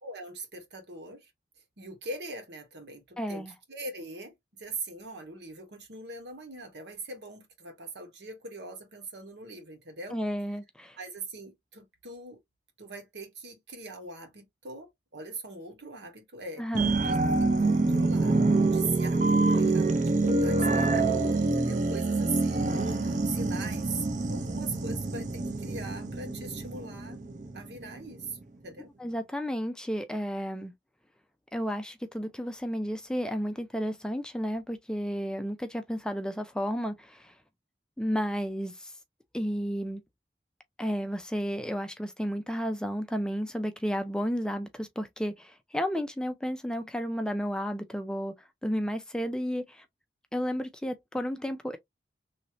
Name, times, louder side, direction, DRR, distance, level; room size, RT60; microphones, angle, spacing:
voice 1, 0.0-1.3 1.8-10.2 11.0-12.4 12.8-16.7 17.0-17.2 17.6-18.4 18.7-24.0 24.3-27.2 27.5-28.9, right 3 dB, 80° right, 1.3 m, -41 dB
voice 2, 3.2-3.5 10.1-11.0 16.6-17.0 29.0-30.7 31.5-37.3 38.0-38.9 39.3-40.0 40.8-48.3 48.6-49.8 50.3-51.8, equal, 5° left, 0.3 m, -32 dB
sound 1, 16.7-27.8 28.2-28.3, right 3 dB, 45° right, 0.6 m, -26 dB
3.2 x 2.7 x 2.9 m
head